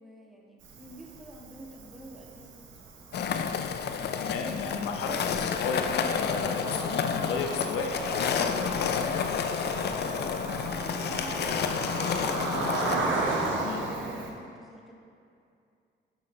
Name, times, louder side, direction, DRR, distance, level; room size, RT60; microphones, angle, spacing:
voice 1, 0.0-3.7 9.9-10.3 10.7-13.5 13.7-14.9, right 1 dB, ahead, -3 dB, 1.7 m, -49 dB
Cricket, 0.6-14.3, right 2 dB, 70° right, 1.3 m, -35 dB
sound 1, 3.1-13.0, left 7 dB, 55° left, 0.5 m, -30 dB
voice 2, 4.2-8.9 13.6-13.9, left 5 dB, 90° left, 3 dB, 1.0 m, -33 dB
11.0 x 6.4 x 3.3 m, 2.4 s
cardioid pair, 90°, 20 cm